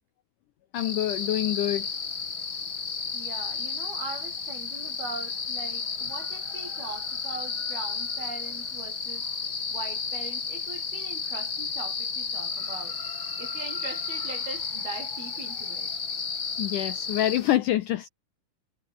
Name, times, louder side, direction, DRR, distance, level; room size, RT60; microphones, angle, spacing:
voice 1, 0.7-1.9 16.6-18.1, left 13 dB, 75° left, 2.0 m, -26 dB
sound 1, 0.7-17.6, left 5 dB, 35° left, 3.3 m, -33 dB
voice 2, 3.1-9.3 9.7-13.0 13.4-15.9, right 4 dB, 70° right, 9.2 m, -41 dB
omnidirectional pair, 4.6 m